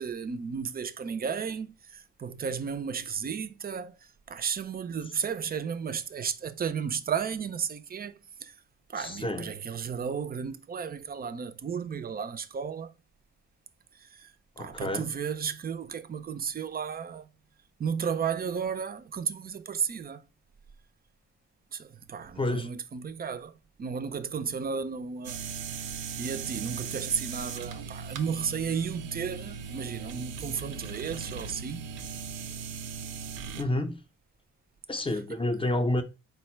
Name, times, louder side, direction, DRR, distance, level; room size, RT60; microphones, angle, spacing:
voice 1, 0.0-8.5 8.9-12.9 13.9-14.3 14.6-17.3 17.8-20.2 21.7-25.4 26.2-31.9 35.3-35.4, right 6 dB, 30° right, 0.4 m, -33 dB
voice 2, 9.0-9.5 14.6-15.1 22.4-22.7 33.6-34.0 34.9-36.0, left 1 dB, 15° left, 0.6 m, -29 dB
sound 1, 25.2-33.6, right 6 dB, 90° right, 0.6 m, -38 dB
4.2 x 2.1 x 4.4 m
cardioid pair, 90°, 30 cm